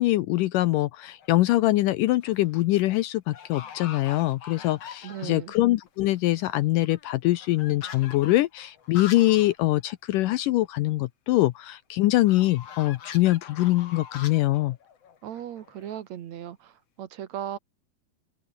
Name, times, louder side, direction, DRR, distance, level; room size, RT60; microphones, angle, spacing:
voice 1, 0.0-14.8, left 17 dB, 80° left, 2.0 m, -23 dB
sound 1, 1.0-1.5 2.0-2.5 2.7-2.8 3.3-5.5 5.9-6.0 6.2-9.5 9.9-10.0 10.3-10.4 12.3-16.0, left 8 dB, 45° left, 2.8 m, -43 dB
voice 2, 5.0-5.5 15.2-17.6, right 10 dB, 60° right, 2.0 m, -37 dB
open air
omnidirectional pair, 4.4 m